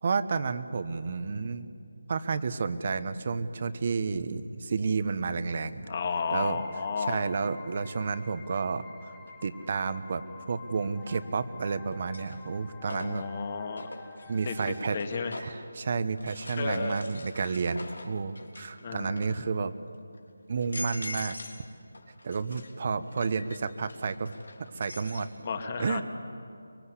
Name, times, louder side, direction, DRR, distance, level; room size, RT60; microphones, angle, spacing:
voice 1, 0.0-1.7 2.1-5.8 6.3-6.6 7.0-9.2 9.4-13.2 14.3-15.0 15.4-19.7 20.5-21.4 22.2-24.3 24.6-25.3 25.8-26.0, right 4 dB, 40° right, 12 dB, 1.1 m, -31 dB
voice 2, 5.9-7.2 12.7-14.0 14.5-15.4 16.6-17.0 18.8-19.4 25.4-26.0, left 5 dB, 35° left, 5 dB, 2.1 m, -33 dB
sound 1, 6.2-14.9, left 5 dB, 5° left, 1.2 m, -50 dB
sound 2, 9.3-9.4 11.1-11.5 11.9-15.7 16.2-18.8 19.1-19.6 20.1-20.2 20.6-21.6 21.9-25.3, left 2 dB, 80° left, 3.1 m, -44 dB
24.0 x 23.5 x 8.3 m, 2.5 s
figure-of-eight pair, 170°, 0 cm